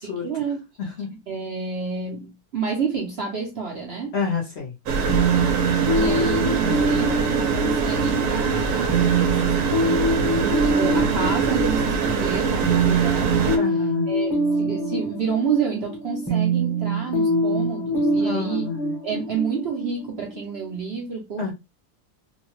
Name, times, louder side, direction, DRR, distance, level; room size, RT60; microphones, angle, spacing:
voice 1, 0.0-0.6 1.3-4.1 5.4-13.6 14.1-18.7 19.0-21.5, right 5 dB, 55° right, 0.8 m, -29 dB
voice 2, 0.8-1.1 4.1-4.7 13.6-14.2 18.2-19.0 21.4-21.5, left 5 dB, 55° left, 0.9 m, -29 dB
sound 1, 4.9-13.6, right 5 dB, 80° right, 1.1 m, -23 dB
sound 2, 5.1-20.7, right 2 dB, 20° left, 0.9 m, -24 dB
2.8 x 2.2 x 3.1 m
omnidirectional pair, 1.7 m